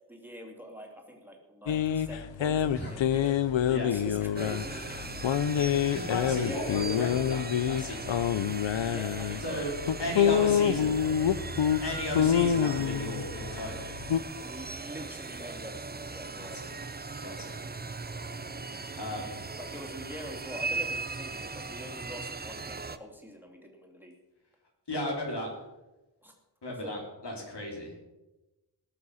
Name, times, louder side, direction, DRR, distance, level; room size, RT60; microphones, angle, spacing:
voice 1, 0.1-3.4 3.8-5.4 6.3-6.8 8.9-9.6 10.0-11.6 14.4-16.6 18.2-18.6 19.6-24.1 26.2-26.3 26.7-26.9, equal, 5° right, 1 dB, 2.7 m, -45 dB
sound 1, 1.7-14.2, left 9 dB, 90° left, 0.6 m, -27 dB
sound 2, 4.4-23.0, right 4 dB, 20° right, 0.6 m, -39 dB
voice 2, 5.8-8.2 9.4-9.7 10.0-11.0 11.8-13.8 16.3-16.7 17.2-17.6 18.9-19.4 24.9-25.5 26.6-28.0, left 1 dB, 65° left, -1 dB, 3.9 m, -35 dB
19.5 x 6.9 x 5.6 m, 1.0 s
wide cardioid pair, 85°, 44 cm